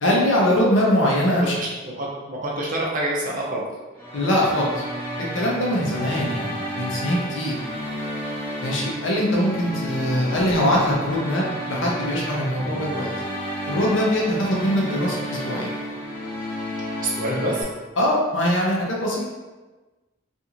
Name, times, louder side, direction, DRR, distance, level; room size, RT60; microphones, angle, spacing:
voice 1, 0.0-1.6 4.1-4.8 5.3-7.6 8.6-13.1 13.7-15.7 17.3-17.4 18.0-19.3, equal, 75° left, -3 dB, 0.7 m, -22 dB
voice 2, 1.9-3.6 17.0-17.6, right 1 dB, 45° right, -3 dB, 0.6 m, -27 dB
sound 1, 4.0-17.6, equal, 10° left, 0.7 m, -31 dB
2.6 x 2.4 x 2.9 m, 1.2 s
head